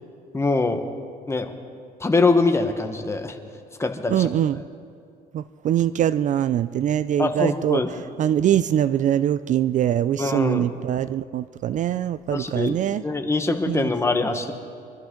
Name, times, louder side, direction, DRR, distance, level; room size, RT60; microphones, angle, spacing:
voice 1, 0.3-0.8 1.3-1.5 2.0-3.4 3.8-4.3 7.2-7.9 10.2-10.7 12.3-14.5, left 3 dB, 15° left, 6 dB, 1.2 m, -23 dB
voice 2, 4.1-4.6 5.3-7.8 8.2-13.0 13.7-13.9, right 10 dB, 50° right, 15 dB, 0.4 m, -23 dB
24.0 x 13.0 x 3.8 m, 2.4 s
cardioid pair, 110°, 17 cm